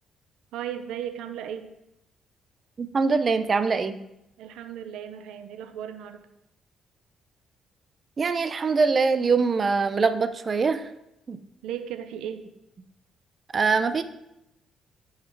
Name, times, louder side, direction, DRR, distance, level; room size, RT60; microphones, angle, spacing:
voice 1, 0.5-1.7 4.4-6.2 11.6-12.5, right 9 dB, 90° right, 9 dB, 0.6 m, -36 dB
voice 2, 2.8-4.0 8.2-10.9 11.3-11.4 13.5-14.0, right 4 dB, 40° right, 10 dB, 0.7 m, -23 dB
10.0 x 4.9 x 4.6 m, 0.85 s
cardioid pair, 90°, 0 cm